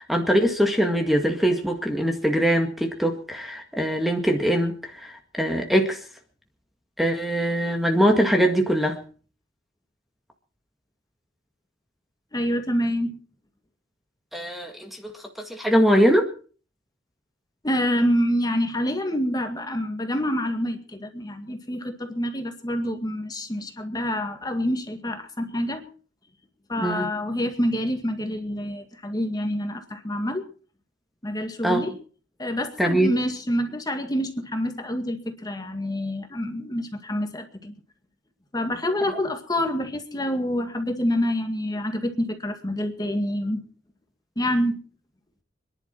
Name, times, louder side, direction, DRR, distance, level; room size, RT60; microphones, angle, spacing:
voice 1, 0.0-6.0 7.0-9.0 14.3-15.1 15.5-16.3 26.8-27.1 31.6-31.8 32.8-33.1 39.1-39.2, equal, ahead, 4 dB, 1.9 m, -22 dB
voice 2, 12.3-13.2 17.6-25.8 26.7-30.4 31.2-31.9 32.4-37.7 38.5-43.6 44.4-44.8, equal, 20° left, 5 dB, 2.0 m, -27 dB
26.0 x 11.0 x 4.6 m, 0.41 s
head